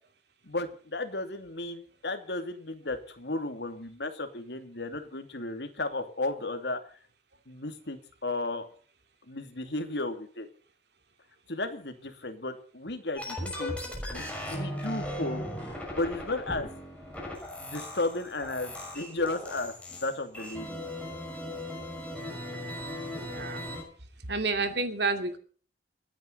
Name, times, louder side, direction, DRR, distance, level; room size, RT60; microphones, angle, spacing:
voice 1, 0.4-6.8 7.5-8.7 9.3-10.5 11.5-13.8 14.1-16.7 17.6-19.7 20.0-20.8, left 2 dB, 70° left, 7 dB, 2.7 m, -34 dB
sound 1, 13.2-23.8, left 1 dB, 5° left, 6.0 m, -38 dB
voice 2, 23.1-23.6 24.3-25.4, right 3 dB, 70° right, 7 dB, 2.6 m, -30 dB
28.0 x 9.9 x 4.1 m, 0.43 s
head